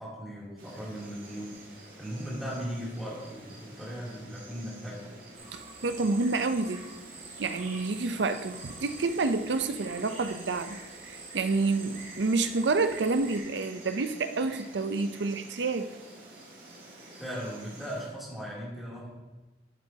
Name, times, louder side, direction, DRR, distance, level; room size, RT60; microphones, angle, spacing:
voice 1, 0.0-5.1 17.1-19.1, equal, ahead, -8 dB, 2.9 m, -38 dB
Insect, 0.6-18.1, right 2 dB, 50° right, 2.1 m, -49 dB
sound 1, 5.3-13.4, right 3 dB, 35° right, 1.3 m, -47 dB
voice 2, 5.5-6.8 7.4-10.8 11.0-15.9, right 3 dB, 80° right, 10 dB, 0.6 m, -29 dB
12.0 x 7.6 x 2.8 m, 1.1 s
head